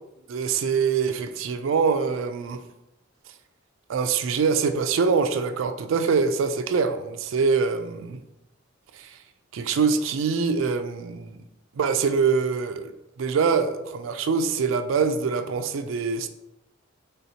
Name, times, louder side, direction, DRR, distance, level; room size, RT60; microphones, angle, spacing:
voice 1, 0.3-2.6 3.9-8.2 9.0-9.1 9.5-11.4 11.8-12.9 13.2-16.3, right 5 dB, 70° right, 0.4 m, -24 dB
4.2 x 3.7 x 2.7 m
head